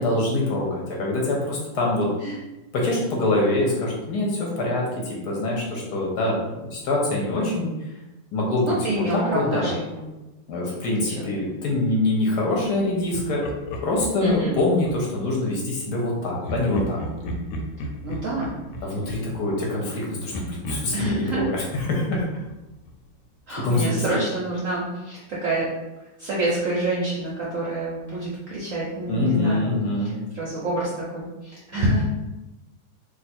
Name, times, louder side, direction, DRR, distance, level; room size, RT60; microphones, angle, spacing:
voice 1, 0.0-2.1 2.7-7.7 8.3-9.7 10.5-13.4 13.8-17.0 18.8-22.2 23.5-24.2 29.1-30.2, left 2 dB, 65° left, -2 dB, 1.2 m, -24 dB
voice 2, 8.6-9.7 10.0-10.1 10.6-11.4 14.2-14.5 18.0-18.5 20.9-21.4 23.5-25.7 26.2-29.7 30.3-32.0, right 1 dB, 65° right, -6 dB, 0.8 m, -27 dB
Laughter, 13.1-15.3 16.4-19.9 20.3-23.1, equal, 90° left, 1.4 m, -34 dB
2.9 x 2.4 x 4.2 m, 1.0 s
omnidirectional pair, 2.1 m